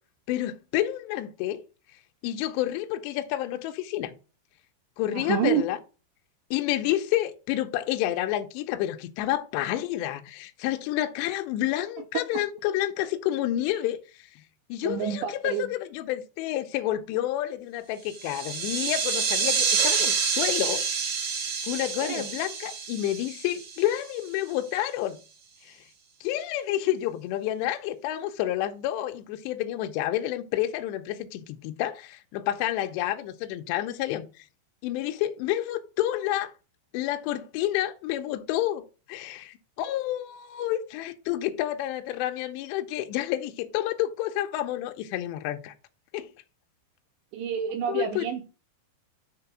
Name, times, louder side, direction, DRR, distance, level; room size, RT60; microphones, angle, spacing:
voice 1, 0.3-1.6 2.2-4.1 5.0-5.8 6.5-14.3 14.7-20.8 21.7-25.2 25.6-25.8 26.2-34.3 34.8-36.5 36.9-45.7 46.1-46.3 47.9-48.3, left 13 dB, 85° left, 2.6 m, -29 dB
voice 2, 5.1-5.7 14.8-15.7 22.0-22.2 47.3-48.4, right 8 dB, 80° right, 2.7 m, -28 dB
sound 1, 18.1-24.2, right 5 dB, 55° right, 1.9 m, -28 dB
6.7 x 3.5 x 5.9 m
omnidirectional pair, 5.5 m